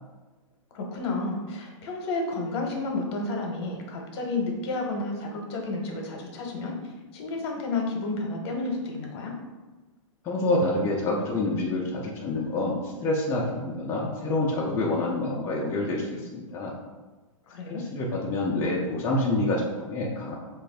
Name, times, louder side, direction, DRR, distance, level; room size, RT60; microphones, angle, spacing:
voice 1, 0.7-6.8 7.1-9.3 17.5-17.8, left 3 dB, 50° left, 1 dB, 0.7 m, -31 dB
voice 2, 10.2-16.7 17.7-20.4, left 2 dB, 15° left, -3 dB, 0.3 m, -27 dB
3.3 x 2.4 x 3.3 m, 1.2 s
hypercardioid pair, 145°, 17 cm